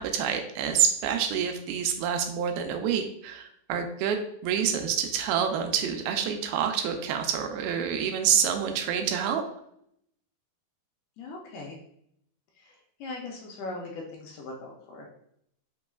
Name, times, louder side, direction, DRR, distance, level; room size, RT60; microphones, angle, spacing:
voice 1, 0.0-9.4, right 8 dB, 90° right, 5 dB, 2.5 m, -27 dB
voice 2, 11.2-11.8 12.6-15.1, left 2 dB, 80° left, -1 dB, 1.8 m, -40 dB
6.0 x 3.1 x 2.2 m, 0.71 s
omnidirectional pair, 4.2 m